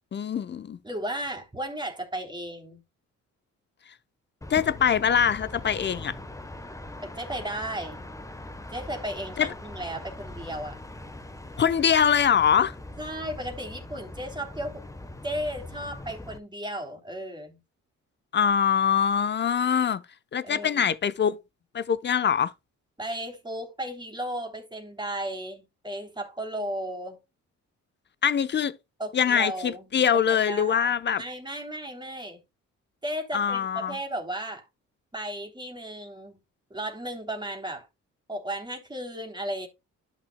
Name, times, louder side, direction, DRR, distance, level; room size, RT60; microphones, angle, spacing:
voice 1, 0.1-0.8 4.5-6.1 9.4-9.5 11.6-12.7 18.3-20.0 20.3-21.4 21.7-22.5 28.2-28.7 29.1-31.2 33.3-34.0, left 8 dB, 35° left, 0.8 m, -23 dB
voice 2, 0.8-2.8 7.0-8.1 8.7-10.8 13.0-14.8 15.2-17.6 20.4-20.8 23.0-27.2 29.0-29.9 30.5-32.4 33.0-34.7 35.1-36.4 36.7-37.9 38.3-39.7, right 1 dB, 15° right, 3.0 m, -35 dB
sound 1, 4.4-16.4, left 1 dB, 10° left, 1.1 m, -41 dB
11.5 x 6.1 x 2.2 m
cardioid pair, 90°, 30 cm